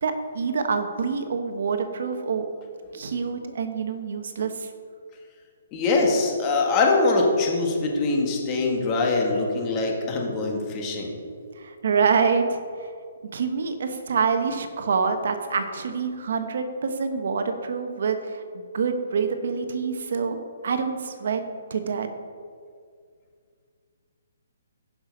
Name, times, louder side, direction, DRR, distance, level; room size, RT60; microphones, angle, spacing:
voice 1, 0.0-2.5 2.9-4.7 11.6-12.9 13.2-20.4 20.6-21.4 21.7-22.1, right 5 dB, 60° right, 7 dB, 1.1 m, -26 dB
voice 2, 5.7-11.1, left 3 dB, 20° left, 0 dB, 1.8 m, -23 dB
15.0 x 6.0 x 5.2 m, 2.2 s
hypercardioid pair, 160°, 0 cm